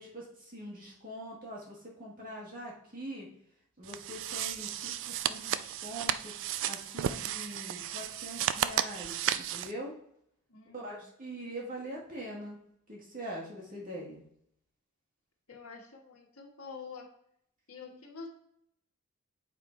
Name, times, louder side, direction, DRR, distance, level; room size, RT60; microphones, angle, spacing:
voice 1, 0.0-3.3 3.8-6.3 6.6-10.0 10.7-12.6 12.9-14.2, right 1 dB, 40° right, -3 dB, 1.9 m, -43 dB
sound 1, 3.8-9.7, right 10 dB, 60° right, 0.4 m, -34 dB
voice 2, 10.5-11.1 15.5-17.1 17.7-18.3, left 5 dB, 70° left, 0 dB, 1.8 m, -47 dB
8.3 x 3.7 x 4.6 m, 0.73 s
head